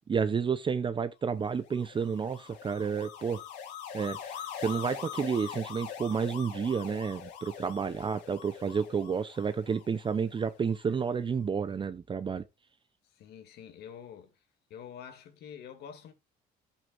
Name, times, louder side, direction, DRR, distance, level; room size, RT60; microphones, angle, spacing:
voice 1, 0.1-3.4 3.9-12.4, right 6 dB, 30° right, 0.8 m, -31 dB
sound 1, 1.5-10.8, left 8 dB, 90° left, 3.2 m, -43 dB
voice 2, 13.0-14.4 14.7-16.1, left 8 dB, 75° left, 2.5 m, -47 dB
11.0 x 8.4 x 2.6 m
cardioid pair, 110°, 17 cm